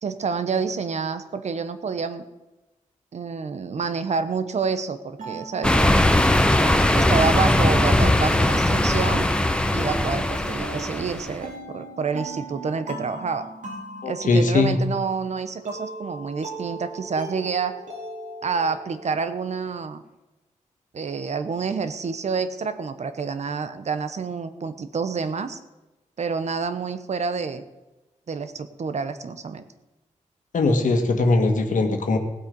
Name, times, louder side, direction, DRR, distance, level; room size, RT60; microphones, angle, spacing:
voice 1, 0.0-2.3 3.1-6.0 6.9-9.3 9.7-13.5 14.1-17.8 18.4-20.0 20.9-25.6 26.2-27.6 28.3-29.6, right 5 dB, 60° right, 11 dB, 1.0 m, -28 dB
sound 1, 4.4-19.1, right 1 dB, 80° right, 2.9 m, -38 dB
sound 2, 5.6-11.4, left 1 dB, 5° left, 0.8 m, -20 dB
voice 2, 14.0-14.8 30.5-32.2, left 3 dB, 75° left, 5 dB, 1.7 m, -20 dB
17.5 x 7.9 x 5.4 m, 1.1 s
wide cardioid pair, 125°, 13 cm